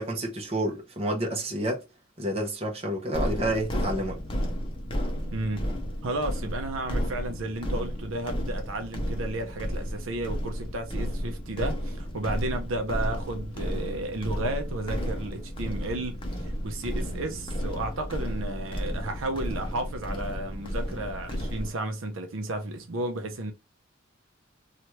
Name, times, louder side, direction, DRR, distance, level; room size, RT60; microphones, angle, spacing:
voice 1, 0.0-1.8 2.2-4.2, right 1 dB, 30° right, 0.8 m, -29 dB
sound 1, 3.1-21.7, equal, 25° left, 0.6 m, -32 dB
voice 2, 5.3-5.7 6.0-23.5, right 2 dB, 80° right, 0.6 m, -33 dB
2.9 x 2.4 x 3.0 m
head